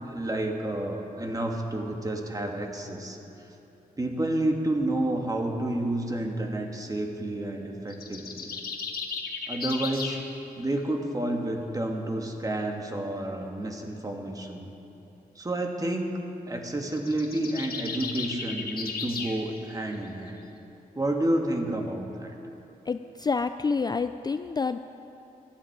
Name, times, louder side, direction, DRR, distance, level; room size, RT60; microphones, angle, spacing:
voice 1, 0.0-3.2 4.0-8.5 9.5-10.2 10.6-14.7 15.3-16.2 16.5-20.4 20.9-22.3, right 1 dB, 25° right, 2 dB, 1.6 m, -30 dB
sound 1, 7.9-10.2 16.8-19.4, left 5 dB, 75° left, 1.5 m, -35 dB
voice 2, 22.9-24.8, left 4 dB, 25° left, 10 dB, 0.3 m, -28 dB
16.0 x 11.5 x 4.6 m, 3.0 s
cardioid pair, 90°, 16 cm